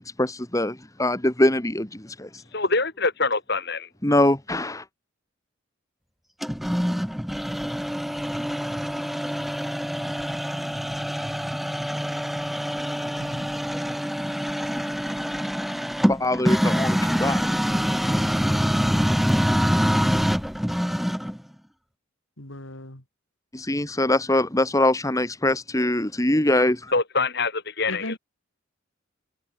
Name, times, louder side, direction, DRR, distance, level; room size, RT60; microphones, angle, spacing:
voice 1, 0.0-2.4 4.0-4.8 16.1-17.5 23.5-26.9, left 1 dB, 15° left, 1.8 m, -23 dB
voice 2, 2.5-3.9 26.9-28.2, left 3 dB, 55° left, 7.5 m, -25 dB
sound 1, 6.4-21.4, equal, ahead, 3.6 m, -25 dB
voice 3, 22.4-23.0 27.9-28.2, left 2 dB, 80° left, 4.9 m, -36 dB
head